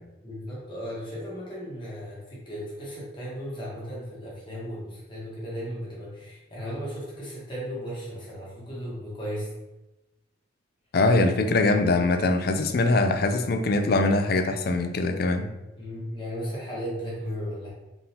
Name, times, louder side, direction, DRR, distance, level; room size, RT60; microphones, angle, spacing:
voice 1, 0.2-9.5 15.8-17.7, equal, 25° left, -6 dB, 1.3 m, -35 dB
voice 2, 10.9-15.5, left 2 dB, 55° left, 8 dB, 0.4 m, -22 dB
3.8 x 3.8 x 2.9 m, 1.0 s
head